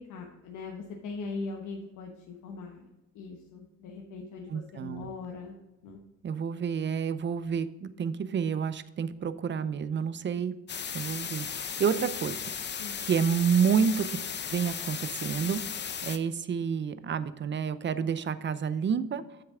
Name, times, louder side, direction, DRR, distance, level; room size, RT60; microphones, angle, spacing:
voice 1, 0.0-2.9 3.1-5.6 5.8-6.0 12.8-13.0, left 4 dB, 80° left, 1 dB, 1.1 m, -40 dB
voice 2, 4.5-5.1 6.2-10.5 10.9-12.4 13.0-14.2 14.5-15.6 16.0-19.2, right 7 dB, 40° right, 14 dB, 0.6 m, -29 dB
sound 1, 10.7-16.2, left 7 dB, 35° left, 0.6 m, -36 dB
7.8 x 6.7 x 3.6 m, 1.0 s
cardioid pair, 90°, 30 cm